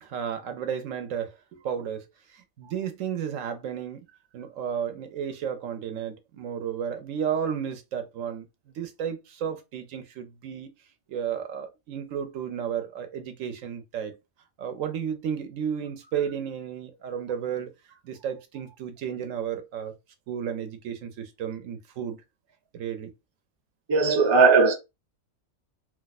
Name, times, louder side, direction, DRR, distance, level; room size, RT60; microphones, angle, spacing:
voice 1, 0.0-2.0 2.3-4.0 4.3-8.5 8.7-10.7 11.1-14.2 14.6-17.7 18.0-19.9 20.3-22.2 22.7-23.1, right 8 dB, 75° right, 1.0 m, -33 dB
voice 2, 23.9-24.7, right 4 dB, 35° right, 0.4 m, -18 dB
2.5 x 2.4 x 4.0 m
omnidirectional pair, 1.4 m